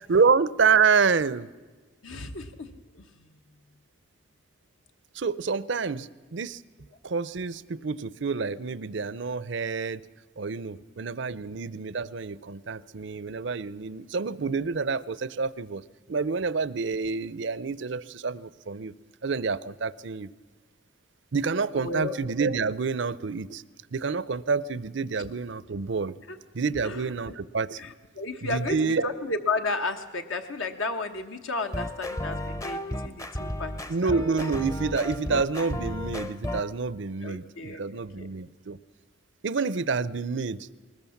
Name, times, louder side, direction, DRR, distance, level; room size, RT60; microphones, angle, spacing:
voice 1, 0.1-1.5 5.1-6.6 7.0-10.0 10.4-15.8 16.1-18.9 19.2-20.3 21.3-23.6 23.9-26.2 26.5-27.8 28.4-29.0 33.9-38.8 39.4-40.7, right 5 dB, 60° right, 18 dB, 0.5 m, -28 dB
voice 2, 2.0-3.1 21.7-22.1 26.3-26.4 26.8-27.0 27.8-33.7 34.0-34.2 37.2-38.3, left 3 dB, 70° left, 6 dB, 1.1 m, -33 dB
sound 1, 31.6-36.7, left 1 dB, 15° left, 0.7 m, -33 dB
20.0 x 20.0 x 7.2 m, 1.3 s
head